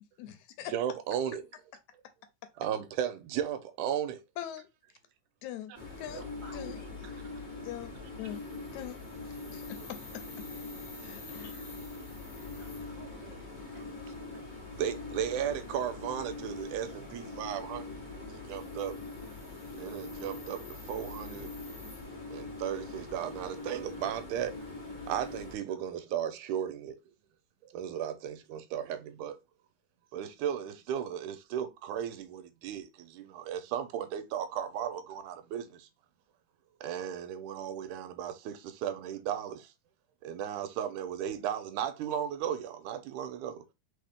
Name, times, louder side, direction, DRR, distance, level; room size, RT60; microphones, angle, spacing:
voice 1, 0.2-0.7 4.4-4.7 5.4-6.3 6.5-6.8 7.6-7.9 8.2-8.4 8.7-9.0 9.5-10.2 11.0-11.7, left 11 dB, 75° left, 1.9 m, -42 dB
voice 2, 0.7-1.4 2.6-4.2 6.1-6.2 14.7-18.9 19.8-21.5 22.3-24.6 25.0-27.0 27.7-29.4 30.1-35.9 36.8-39.7 40.2-43.6, right 9 dB, 85° right, 2.1 m, -35 dB
sound 1, 5.7-25.6, left 3 dB, 60° left, 0.5 m, -43 dB
voice 3, 6.1-7.5 12.5-14.6, right 2 dB, 65° right, 0.7 m, -53 dB
4.2 x 3.6 x 3.5 m
omnidirectional pair, 3.6 m